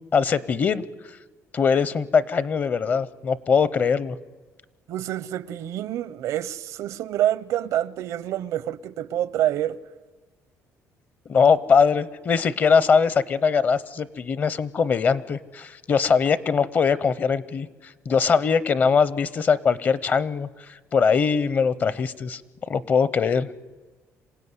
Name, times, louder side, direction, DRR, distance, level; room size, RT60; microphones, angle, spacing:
voice 1, 0.1-0.8 1.5-4.2 11.3-22.4 22.7-23.5, left 6 dB, 35° left, 0.7 m, -21 dB
voice 2, 4.9-9.8, right 12 dB, 70° right, 0.7 m, -27 dB
26.5 x 16.5 x 9.7 m
cardioid pair, 160°, 6 cm